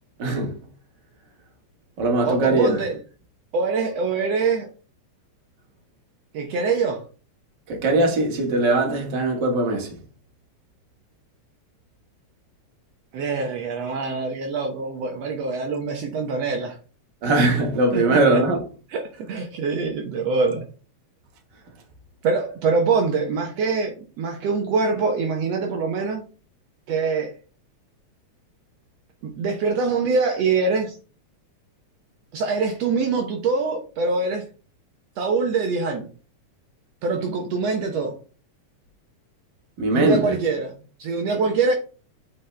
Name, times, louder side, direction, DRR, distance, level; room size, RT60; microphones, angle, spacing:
voice 1, 0.2-0.6 2.0-2.8 7.7-10.0 17.2-18.6 39.8-40.3, right 2 dB, 40° right, 2.2 m, -20 dB
voice 2, 2.2-3.0 3.5-4.7 6.3-7.0 13.1-16.8 17.9-18.2 18.9-20.6 22.2-26.2 26.9-27.3 29.2-31.0 32.3-34.5 35.2-36.1 37.0-38.2 39.9-40.7 41.0-41.8, right 4 dB, 65° right, 2.0 m, -24 dB
8.4 x 5.3 x 3.3 m
omnidirectional pair, 3.3 m